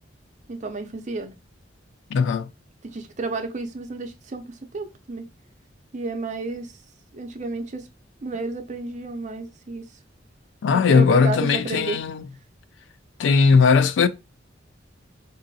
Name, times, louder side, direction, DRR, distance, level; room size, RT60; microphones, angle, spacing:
voice 1, 0.5-1.3 2.8-5.3 5.9-6.7 7.1-7.9 8.2-9.9 10.7-12.0, right 3 dB, 40° right, 0.5 m, -31 dB
voice 2, 2.1-2.5 10.6-12.2 13.2-14.1, left 5 dB, 70° left, 0.3 m, -18 dB
3.8 x 2.5 x 2.7 m
head